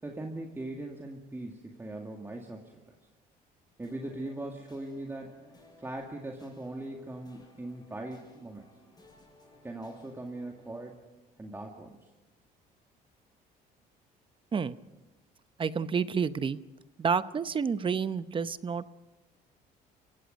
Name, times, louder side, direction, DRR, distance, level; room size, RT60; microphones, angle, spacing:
voice 1, 0.0-2.7 3.8-5.4 5.8-8.7 9.6-11.0 11.4-12.1, right 2 dB, 15° right, 1 dB, 2.1 m, -40 dB
sound 1, 3.8-10.7, left 2 dB, 25° left, 7.7 m, -60 dB
voice 2, 15.6-16.6 17.0-18.9, right 6 dB, 30° right, 13 dB, 0.8 m, -29 dB
29.5 x 16.5 x 5.3 m, 0.99 s
cardioid pair, 110°, 17 cm